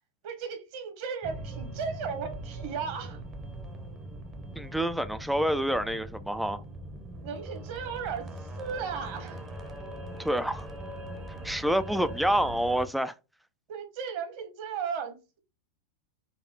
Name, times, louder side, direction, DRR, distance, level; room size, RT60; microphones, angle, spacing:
voice 1, 0.2-3.2 7.2-9.4 13.7-15.4, right 6 dB, 45° right, 1.2 m, -36 dB
sound 1, 1.2-12.9, right 1 dB, 20° right, 0.8 m, -41 dB
voice 2, 4.6-6.6 10.2-10.7 11.4-13.1, equal, ahead, 0.3 m, -27 dB
4.2 x 2.7 x 3.7 m
figure-of-eight pair, 90°, 0 cm